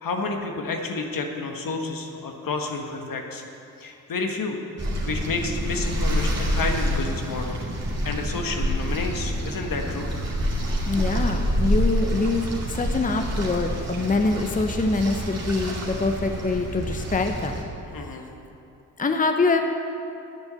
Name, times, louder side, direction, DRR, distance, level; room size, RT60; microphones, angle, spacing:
voice 1, 0.0-3.4 3.8-4.6 5.1-7.6 8.0-10.1 17.9-18.3, left 3 dB, 65° left, 3 dB, 1.4 m, -30 dB
sound 1, 4.8-17.6, equal, 45° right, 2.3 m, -27 dB
voice 2, 10.9-17.6 19.0-19.6, left 3 dB, 20° left, 5 dB, 0.8 m, -24 dB
9.3 x 7.1 x 8.0 m, 2.8 s
supercardioid pair, 55°, 36 cm